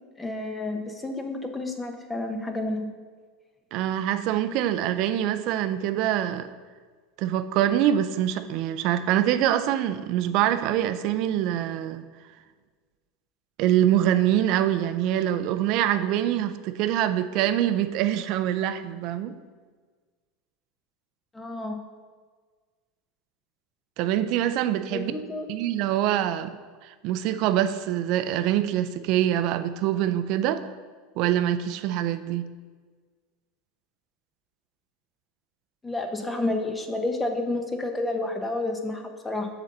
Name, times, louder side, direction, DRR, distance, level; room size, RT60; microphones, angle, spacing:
voice 1, 0.2-2.9 21.3-21.8 24.9-25.5 35.8-39.5, left 2 dB, 10° left, 5 dB, 0.8 m, -30 dB
voice 2, 3.7-6.5 7.2-12.1 13.6-19.3 24.0-25.1 25.5-26.5 26.8-30.7 31.2-32.5, right 11 dB, 55° right, 11 dB, 0.5 m, -24 dB
7.1 x 4.0 x 6.5 m, 1.5 s
supercardioid pair, 135°, 0 cm